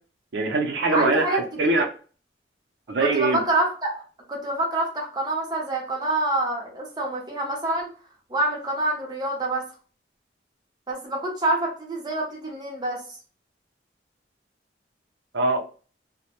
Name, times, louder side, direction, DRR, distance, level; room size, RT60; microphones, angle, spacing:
voice 1, 0.3-1.2 1.6-1.9 2.9-3.4 15.3-15.6, right 2 dB, 70° right, 4 dB, 0.5 m, -22 dB
voice 2, 0.9-1.8 3.0-4.0 4.3-7.9 8.3-9.6 10.9-13.0, right 2 dB, 25° right, -1 dB, 0.6 m, -26 dB
2.1 x 2.1 x 2.9 m, 0.39 s
head